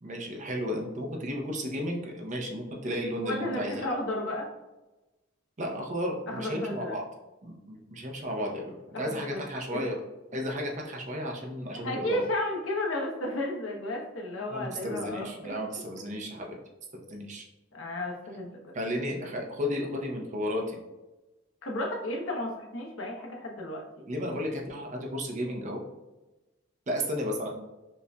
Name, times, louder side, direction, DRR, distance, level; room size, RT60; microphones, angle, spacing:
voice 1, 0.0-3.9 5.6-7.0 7.4-10.0 10.3-12.3 14.5-16.6 17.1-17.4 18.7-20.8 24.1-25.8 26.9-27.5, equal, 40° right, 0 dB, 0.7 m, -33 dB
voice 2, 3.2-4.5 6.3-6.9 8.9-9.4 9.7-9.8 11.7-15.6 17.7-18.7 21.6-23.8, left 1 dB, 80° left, 0 dB, 0.8 m, -33 dB
5.3 x 2.5 x 2.2 m, 1.1 s
head